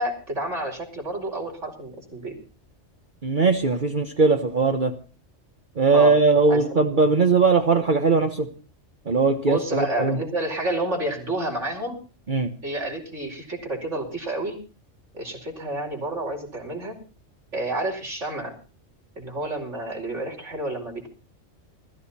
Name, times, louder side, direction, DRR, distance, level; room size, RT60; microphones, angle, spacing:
voice 1, 0.0-2.4 5.9-6.2 6.5-6.8 9.5-12.0 12.6-14.5 15.1-17.0 17.5-18.5 19.2-21.1, right 1 dB, 70° right, 5.3 m, -30 dB
voice 2, 3.2-5.0 5.8-8.5 9.1-10.2 12.3-12.5, right 4 dB, 40° right, 1.3 m, -20 dB
21.5 x 14.0 x 4.3 m
omnidirectional pair, 1.3 m